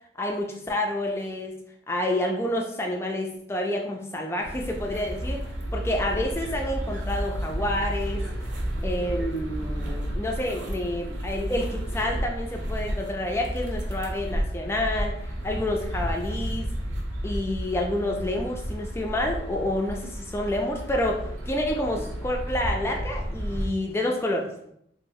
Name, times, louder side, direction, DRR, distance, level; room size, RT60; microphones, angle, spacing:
voice 1, 0.2-1.5 1.9-5.4 5.7-8.2 8.8-15.1 15.4-16.7 17.2-24.7, left 1 dB, 15° left, 1 dB, 0.3 m, -28 dB
sound 1, 4.4-23.7, equal, 85° right, 0.7 m, -32 dB
3.0 x 2.3 x 2.7 m, 0.73 s
head